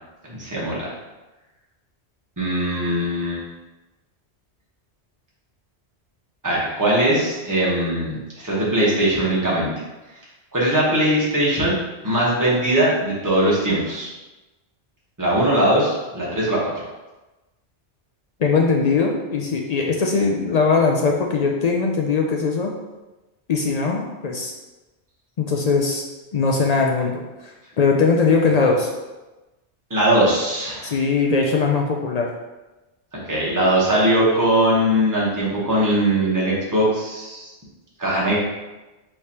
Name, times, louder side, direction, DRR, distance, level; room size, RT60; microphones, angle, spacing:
voice 1, 0.3-0.9 2.4-3.4 6.4-9.7 10.5-11.7 12.0-14.1 15.2-16.7 29.9-30.9 33.1-37.5 38.0-38.4, right 1 dB, 15° right, -6 dB, 1.1 m, -20 dB
voice 2, 18.4-22.8 23.5-24.5 25.4-26.0 26.3-27.3 27.8-28.9 30.8-32.3, left 4 dB, 60° left, 0 dB, 0.4 m, -20 dB
4.8 x 3.2 x 2.8 m, 1.1 s
omnidirectional pair, 1.1 m